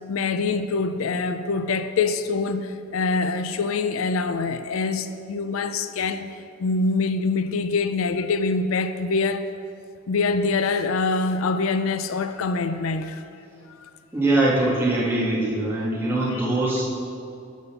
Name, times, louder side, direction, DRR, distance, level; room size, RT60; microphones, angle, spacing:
voice 1, 0.1-6.3 6.6-9.5 10.1-13.2 13.7-13.9 16.2-16.5, left 4 dB, 85° left, 10 dB, 0.4 m, -25 dB
voice 2, 14.1-16.8, right 2 dB, 10° right, -7 dB, 1.8 m, -22 dB
10.5 x 4.2 x 6.9 m, 2.5 s
head